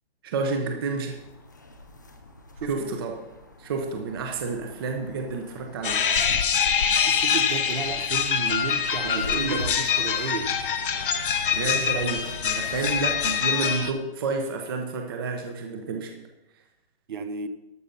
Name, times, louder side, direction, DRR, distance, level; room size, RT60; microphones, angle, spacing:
voice 1, 0.2-1.2 2.6-3.1 3.6-6.0 9.0-9.6 11.5-16.1, right 4 dB, 20° right, 3 dB, 0.8 m, -30 dB
sound 1, 1.1-13.3, left 1 dB, 20° left, 0.4 m, -43 dB
voice 2, 2.6-2.9 7.0-10.5 17.1-17.5, right 5 dB, 50° right, 10 dB, 1.0 m, -33 dB
sound 2, 5.8-13.9, left 7 dB, 55° left, 1.1 m, -25 dB
sound 3, 8.6-9.6 11.9-12.8, equal, ahead, 1.1 m, -50 dB
12.5 x 6.4 x 5.6 m, 0.95 s
hypercardioid pair, 170°, 32 cm